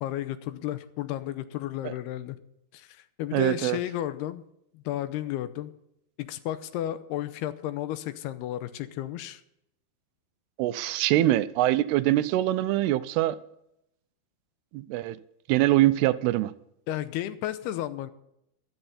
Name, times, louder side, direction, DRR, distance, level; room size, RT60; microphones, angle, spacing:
voice 1, 0.0-2.4 2.7-4.4 4.7-5.7 6.2-9.4 16.9-18.1, left 13 dB, 85° left, 2.8 m, -33 dB
voice 2, 3.3-3.8 10.6-13.4 14.7-15.2 15.5-16.5, right 15 dB, 85° right, 2.7 m, -23 dB
14.5 x 12.5 x 4.1 m
omnidirectional pair, 4.7 m